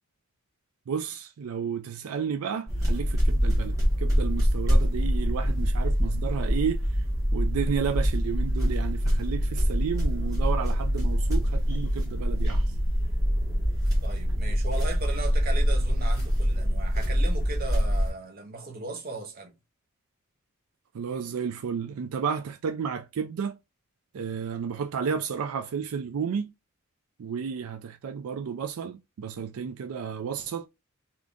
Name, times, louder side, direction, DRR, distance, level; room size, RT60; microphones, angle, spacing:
voice 1, 0.9-7.0 7.3-12.7 20.9-23.6 24.1-26.5 27.2-30.7, right 6 dB, 80° right, 0.4 m, -32 dB
sound 1, 2.7-18.1, equal, 15° right, 1.5 m, -25 dB
voice 2, 14.0-19.5, right 3 dB, 40° right, 0.8 m, -37 dB
3.4 x 2.8 x 2.5 m
head